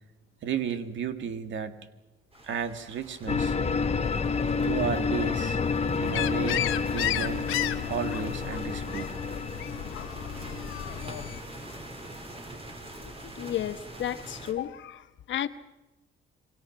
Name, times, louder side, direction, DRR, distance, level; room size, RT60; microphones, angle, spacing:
voice 1, 0.4-1.8 2.4-3.6 4.6-5.6 6.0-6.6 6.9-7.5 7.9-9.1, right 7 dB, 70° right, 2.1 m, -33 dB
sound 1, 2.3-14.5, right 1 dB, 30° right, 4.6 m, -45 dB
sound 2, 3.3-12.1, left 5 dB, 30° left, 1.2 m, -30 dB
sound 3, 6.1-11.4, left 13 dB, 90° left, 1.0 m, -33 dB
voice 2, 13.2-15.5, left 11 dB, 70° left, 1.3 m, -33 dB
27.5 x 24.0 x 5.9 m
cardioid pair, 90°, 20 cm